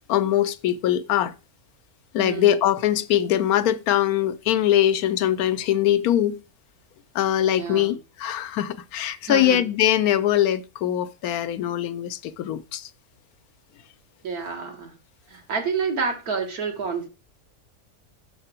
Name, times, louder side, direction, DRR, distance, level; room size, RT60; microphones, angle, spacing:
voice 1, 0.1-1.3 2.1-6.4 7.1-12.9, left 11 dB, 85° left, 1.1 m, -22 dB
voice 2, 2.2-2.6 7.6-8.0 9.2-9.6 14.2-15.0 15.3-17.1, right 5 dB, 90° right, 2.1 m, -29 dB
6.7 x 4.9 x 4.3 m
omnidirectional pair, 1.5 m